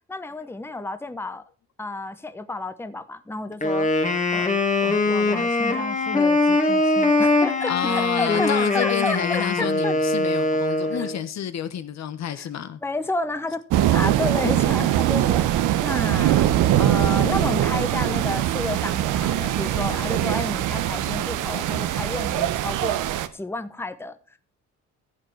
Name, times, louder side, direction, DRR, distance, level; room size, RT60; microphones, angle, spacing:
voice 1, 0.1-1.4 1.8-3.9 4.3-4.5 4.8-9.9 10.9-11.1 12.3-12.5 12.8-13.6 13.9-23.0 23.3-24.4, left 2 dB, 10° left, 0.9 m, -31 dB
Wind instrument woodwind instrument, 3.6-11.2, left 2 dB, 25° left, 1.9 m, -22 dB
voice 2, 7.7-12.8, left 9 dB, 60° left, 1.1 m, -29 dB
sound 1, 13.7-23.3, right 12 dB, 85° right, 0.9 m, -22 dB
15.0 x 6.9 x 4.6 m
cardioid pair, 90°, 30 cm